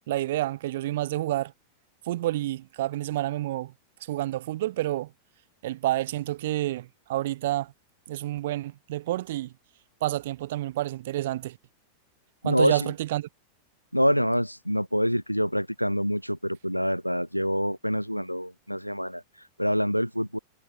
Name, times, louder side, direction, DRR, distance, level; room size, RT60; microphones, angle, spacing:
voice 1, 0.1-1.5 2.1-3.7 4.1-5.1 5.6-7.7 8.1-9.5 10.0-11.6 12.4-13.3, right 15 dB, 55° right, 2.9 m, -29 dB
voice 2, 12.4-12.9 13.9-19.2 19.6-20.4, equal, 90° left, 0.7 m, -26 dB
figure-of-eight pair, 90°, 0 cm